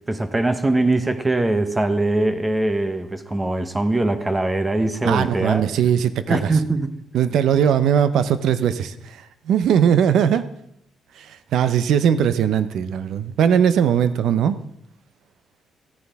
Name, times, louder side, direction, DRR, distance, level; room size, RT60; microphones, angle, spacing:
voice 1, 0.1-5.7 6.3-7.0, right 2 dB, 15° right, 10 dB, 0.9 m, -22 dB
voice 2, 5.0-6.5 7.1-9.2 9.5-10.5 11.2-11.3 11.5-14.6, right 8 dB, 75° right, 13 dB, 0.6 m, -19 dB
14.5 x 9.6 x 3.5 m, 0.77 s
cardioid pair, 90°, 0 cm